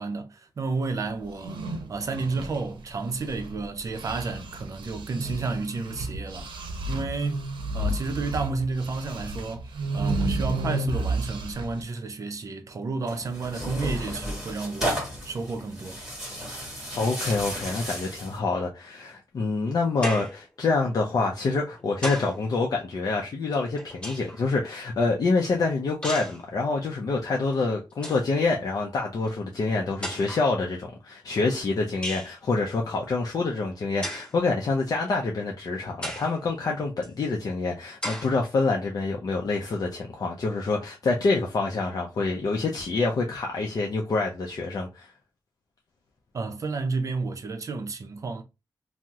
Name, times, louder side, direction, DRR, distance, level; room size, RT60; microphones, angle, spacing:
voice 1, 0.0-6.5 6.9-7.5 7.7-16.0 46.3-48.4, right 3 dB, 40° right, 0.5 m, -31 dB
sound 1, 1.3-3.6 3.9-11.8, right 1 dB, 85° right, 0.6 m, -32 dB
Tearing, 13.1-18.4, equal, 5° right, 1.5 m, -33 dB
voice 2, 17.0-45.1, left 3 dB, 50° left, 0.5 m, -26 dB
sound 2, 20.0-20.4 21.5-22.4 23.5-24.4 26.0-26.4 27.5-27.6 27.9-28.3 29.3-29.4 30.0-30.5 32.0-32.4 34.0-34.4 35.0-35.1 36.0-36.4 37.0-37.1 38.0-38.4, equal, 15° left, 1.3 m, -34 dB
2.8 x 2.0 x 3.5 m
wide cardioid pair, 160°, 8 cm